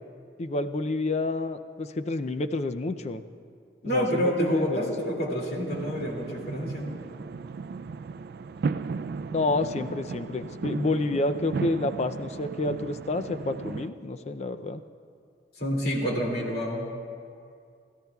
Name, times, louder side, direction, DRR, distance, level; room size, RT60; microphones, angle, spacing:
voice 1, 0.4-3.2 3.8-4.9 9.3-14.8, left 2 dB, 35° left, 10 dB, 0.4 m, -29 dB
voice 2, 3.8-6.9 15.6-16.9, equal, 55° left, -1 dB, 2.4 m, -28 dB
sound 1, 5.7-13.9, right 4 dB, 55° right, 0.3 m, -35 dB
27.5 x 13.0 x 2.3 m, 2.3 s
head